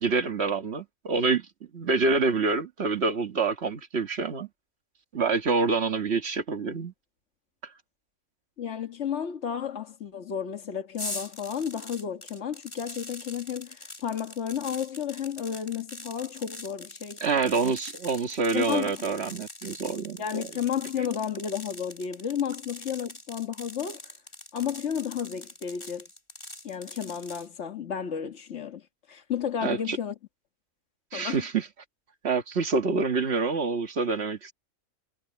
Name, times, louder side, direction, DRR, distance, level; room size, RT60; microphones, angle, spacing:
voice 1, 0.0-1.5 1.7-4.5 5.1-6.9 17.2-20.5 29.6-30.0 31.1-31.7 32.2-34.5, right 4 dB, 50° right, 1.8 m, -27 dB
voice 2, 8.6-17.2 18.5-19.0 20.2-24.0 24.5-26.1 26.6-28.8 29.1-30.1 31.1-31.4, left 8 dB, 50° left, 1.8 m, -32 dB
sound 1, 11.0-27.5, left 1 dB, 20° left, 2.6 m, -43 dB
omnidirectional pair, 1.5 m